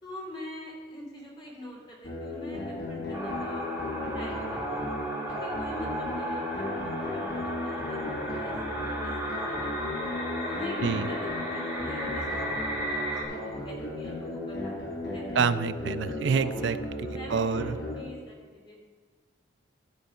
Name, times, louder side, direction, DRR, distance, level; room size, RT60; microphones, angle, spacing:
voice 1, 0.0-4.9 5.3-9.7 10.5-14.9 15.1-15.6 16.4-18.8, left 1 dB, 25° left, -3 dB, 2.8 m, -45 dB
sound 1, 2.0-18.0, left 1 dB, 65° left, 3.2 m, -35 dB
sound 2, 3.1-13.2, equal, 10° right, 2.8 m, -35 dB
voice 2, 15.4-16.8 17.0-17.8, right 5 dB, 70° right, 13 dB, 0.4 m, -27 dB
15.0 x 5.2 x 5.5 m, 1.5 s
head